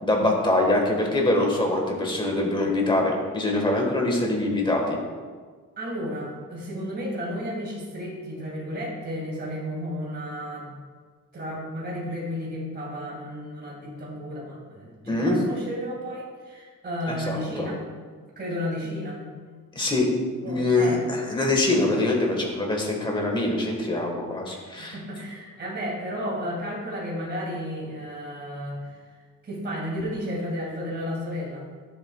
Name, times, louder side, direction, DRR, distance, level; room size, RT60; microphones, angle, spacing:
voice 1, 0.0-5.0 15.1-15.4 17.1-17.7 19.7-20.1 20.5-25.0, left 2 dB, 15° left, 0 dB, 1.5 m, -24 dB
voice 2, 5.8-10.8 11.3-17.8 18.1-19.3 20.4-21.0 24.5-29.0 29.4-31.7, equal, 30° right, -4 dB, 2.1 m, -33 dB
12.0 x 7.3 x 2.3 m, 1.6 s
wide cardioid pair, 150°, 33 cm